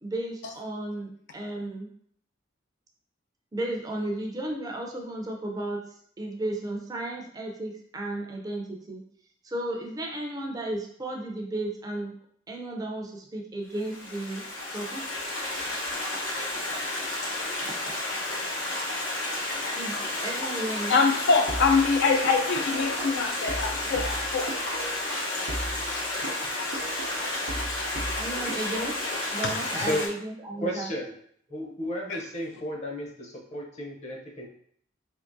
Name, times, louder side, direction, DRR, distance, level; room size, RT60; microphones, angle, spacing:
voice 1, 0.0-1.9 3.5-5.8 6.2-9.0 9.4-12.1 12.5-14.4 14.7-15.0 19.8-20.0 20.2-21.0 28.2-28.9 29.3-30.9, right 1 dB, 20° right, 1 dB, 0.4 m, -34 dB
Stream, 13.8-30.1, left 2 dB, 90° left, 1.2 m, -31 dB
voice 2, 20.9-24.5 25.9-26.0 27.0-27.4 29.4-29.6 32.1-32.2, left 4 dB, 60° left, 4 dB, 0.3 m, -24 dB
sound 1, 21.5-25.2 25.5-29.2, right 1 dB, 80° right, 0.6 m, -38 dB
voice 3, 29.7-30.0 30.5-31.1 31.5-34.5, equal, 35° left, -1 dB, 0.7 m, -33 dB
3.5 x 2.9 x 2.6 m, 0.64 s
head